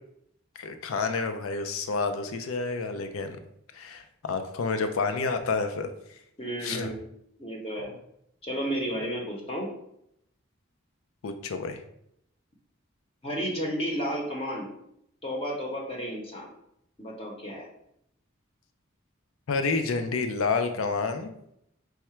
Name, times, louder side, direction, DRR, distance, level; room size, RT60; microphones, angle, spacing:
voice 1, 0.6-3.4 3.7-5.9 6.6-6.9 11.2-11.8 19.5-21.3, left 4 dB, 85° left, 7 dB, 0.4 m, -29 dB
voice 2, 6.4-7.0 7.4-7.9 8.4-9.7 13.2-14.7 15.2-16.5 17.0-17.7, equal, 30° left, 0 dB, 0.7 m, -32 dB
4.7 x 2.1 x 4.3 m, 0.75 s
head